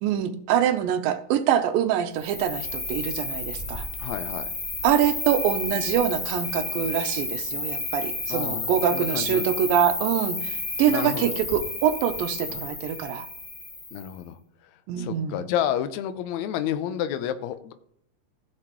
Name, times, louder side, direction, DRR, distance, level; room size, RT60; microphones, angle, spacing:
voice 1, 0.0-3.9 4.8-13.3 14.9-15.4, right 9 dB, 85° right, 9 dB, 2.5 m, -25 dB
Cricket, 2.2-14.1, left 2 dB, 30° left, 2.9 m, -32 dB
voice 2, 4.0-4.5 7.7-7.8 8.3-9.5 10.9-11.4 12.5-12.7 13.9-14.4 15.0-17.7, left 10 dB, 75° left, 10 dB, 1.7 m, -30 dB
15.0 x 6.7 x 3.0 m, 0.69 s
omnidirectional pair, 4.0 m